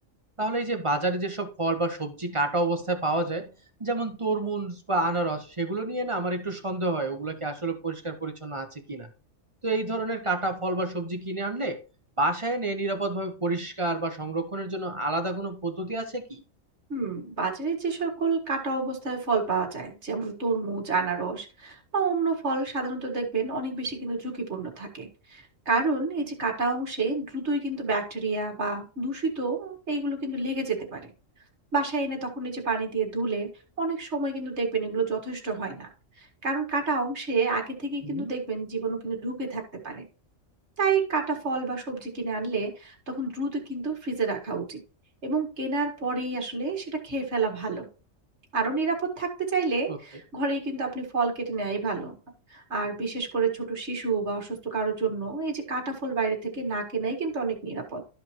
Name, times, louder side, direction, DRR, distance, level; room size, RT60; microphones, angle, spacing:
voice 1, 0.4-3.5 3.8-9.1 9.6-11.8 12.2-16.4 38.0-38.3 49.9-50.0, right 2 dB, 25° right, 5 dB, 1.0 m, -29 dB
voice 2, 16.9-31.1 31.7-33.5 33.8-35.9 36.4-40.1 40.8-44.8 45.2-47.9 48.5-52.2 52.5-58.0, right 3 dB, 60° right, 3 dB, 2.0 m, -29 dB
12.5 x 5.1 x 3.0 m, 0.34 s
omnidirectional pair, 1.4 m